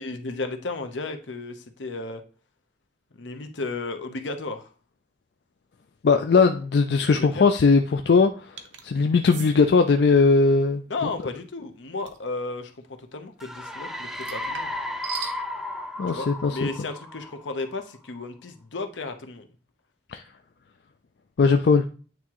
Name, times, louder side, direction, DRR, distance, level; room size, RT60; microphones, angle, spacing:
voice 1, 0.0-2.2 3.1-4.7 7.2-7.4 10.9-12.7 13.1-14.7 16.1-19.5, left 3 dB, 85° left, 7 dB, 0.9 m, -33 dB
voice 2, 6.0-8.3 8.8-10.8 16.0-16.7 20.1-20.2 21.4-21.9, left 4 dB, 60° left, 6 dB, 0.4 m, -19 dB
sound 1, 8.6-8.9 9.3-9.5 12.1-12.3 14.2-15.4, right 7 dB, 80° right, 0.8 m, -37 dB
sound 2, 13.4-18.0, left 1 dB, ahead, 0.4 m, -34 dB
9.2 x 3.6 x 3.0 m, 0.38 s
head